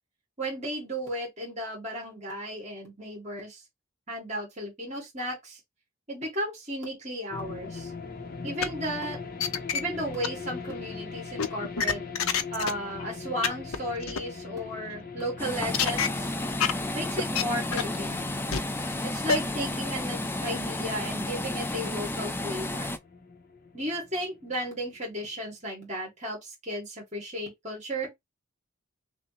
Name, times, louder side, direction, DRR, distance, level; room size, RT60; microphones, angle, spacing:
voice 1, 0.4-3.6 4.1-5.6 6.1-7.9 8.4-9.2 9.7-12.0 12.5-16.3 16.9-18.4 19.0-23.0 23.7-28.1, equal, 35° right, 1.9 m, -34 dB
sound 1, 7.3-25.0, left 4 dB, 45° left, 0.6 m, -41 dB
sound 2, 8.6-8.7 9.1-9.8 10.2-10.3 11.4-12.7 13.0-13.1 13.4-13.5 13.7-13.8 14.0-14.2 15.7-16.1 16.6-16.7 17.2-17.4 17.7-18.0 18.5-18.6 19.3-19.4, left 6 dB, 80° left, 0.6 m, -25 dB
sound 3, 15.4-23.0, left 1 dB, 10° left, 0.3 m, -32 dB
5.8 x 2.1 x 2.9 m
head